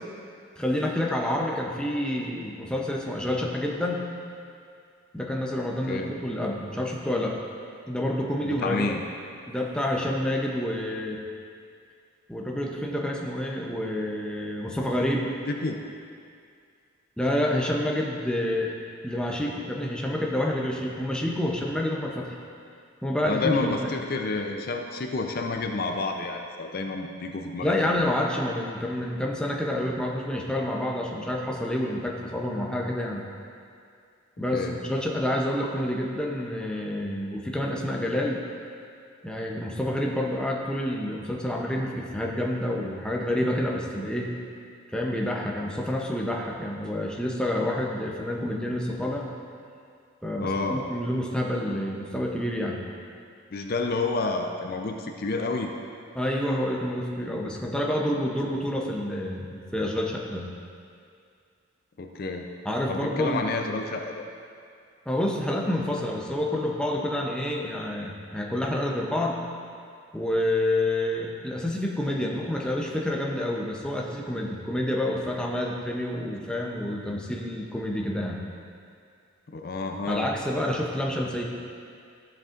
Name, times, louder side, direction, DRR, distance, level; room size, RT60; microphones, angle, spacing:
voice 1, 0.6-4.1 5.1-7.4 7.9-8.9 9.5-11.2 12.3-15.3 17.2-18.7 19.0-22.3 23.0-23.9 27.6-33.2 34.4-38.4 39.2-44.3 44.9-49.3 50.2-52.8 56.1-60.5 62.6-63.4 65.1-69.4 70.1-78.4 80.1-81.4, left 1 dB, 5° left, -1 dB, 0.6 m, -28 dB
voice 2, 8.4-9.0 15.5-15.8 23.3-27.8 34.5-34.8 50.4-50.8 53.5-55.7 62.0-62.5 62.9-64.2 79.5-80.3, left 3 dB, 45° left, 3 dB, 0.5 m, -29 dB
13.5 x 7.7 x 2.5 m, 2.3 s
head